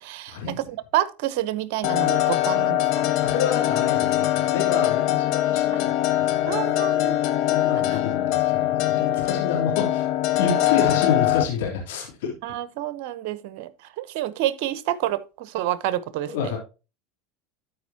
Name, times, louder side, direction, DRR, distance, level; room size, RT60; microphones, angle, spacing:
voice 1, 0.0-3.0 6.5-7.2 7.9-8.0 10.4-10.9 12.4-13.7 14.0-16.5, right 13 dB, 65° right, 0.9 m, -29 dB
sound 1, 1.8-11.4, left 14 dB, 60° left, 0.8 m, -22 dB
voice 2, 3.2-6.8 7.5-10.1 10.4-12.3 16.3-16.6, left 6 dB, 75° left, 3.2 m, -29 dB
13.0 x 5.1 x 2.9 m
hypercardioid pair, 100°, 0 cm